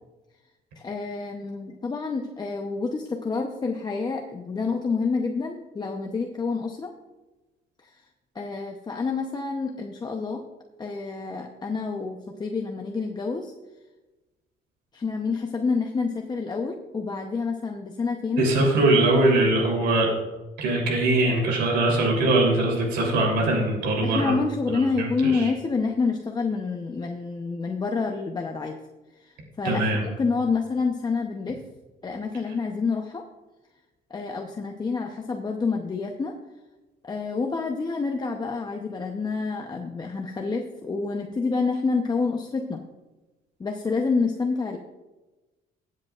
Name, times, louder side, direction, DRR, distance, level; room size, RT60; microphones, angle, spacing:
voice 1, 0.8-6.9 7.8-8.0 8.3-10.4 10.8-13.5 14.9-18.5 24.0-28.8 29.2-31.6 32.0-33.2 34.1-36.3 37.0-42.8 43.6-44.8, left 4 dB, 25° left, 2 dB, 0.8 m, -28 dB
voice 2, 18.4-20.1 20.6-24.3 25.2-25.4 29.6-30.0, right 2 dB, 80° right, -1 dB, 3.3 m, -21 dB
18.0 x 7.7 x 2.4 m, 1.1 s
cardioid pair, 110°, 17 cm